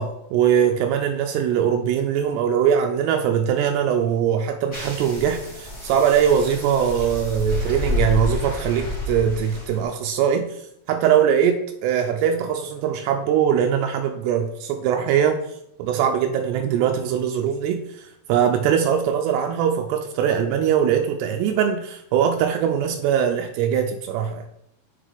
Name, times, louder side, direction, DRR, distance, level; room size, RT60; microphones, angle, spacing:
voice 1, 0.0-15.4 15.8-24.4, right 8 dB, 85° right, 4 dB, 2.7 m, -21 dB
sound 1, 4.7-9.8, left 1 dB, 15° left, 0.9 m, -29 dB
7.3 x 6.5 x 3.5 m, 0.78 s
omnidirectional pair, 4.9 m